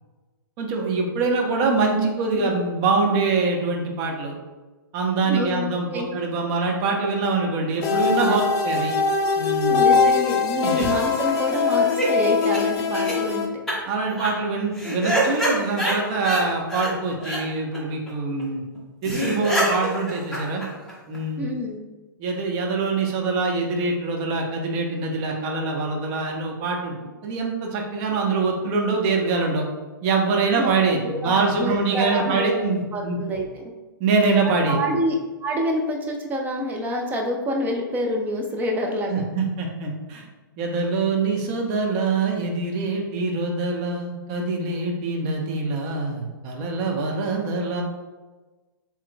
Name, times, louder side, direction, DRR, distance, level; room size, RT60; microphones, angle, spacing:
voice 1, 0.6-4.3 4.9-8.9 9.4-9.8 10.6-10.7 13.8-18.6 19.0-20.6 21.1-21.4 22.2-29.7 30.0-33.2 34.0-35.0 39.1-40.3 40.6-47.8, right 3 dB, 35° right, 0 dB, 1.0 m, -24 dB
voice 2, 5.2-6.1 8.2-8.4 9.7-13.5 21.4-21.8 30.6-30.7 31.0-32.6 32.9-33.7 34.6-35.1 35.4-39.2, equal, 15° right, 1 dB, 0.6 m, -27 dB
sound 1, 7.8-13.5, left 5 dB, 30° left, 0.5 m, -22 dB
sound 2, 10.5-12.1 12.4-12.6 12.9-13.1 13.7-13.8 14.1-14.3 14.7-16.4 16.7-16.9 17.2-17.4 17.7-17.8 18.1-18.2 18.4-18.5 18.8-18.9 19.0-21.2, right 1 dB, 5° left, 1.3 m, -26 dB
7.4 x 3.1 x 2.3 m, 1.2 s
figure-of-eight pair, 115°, 12 cm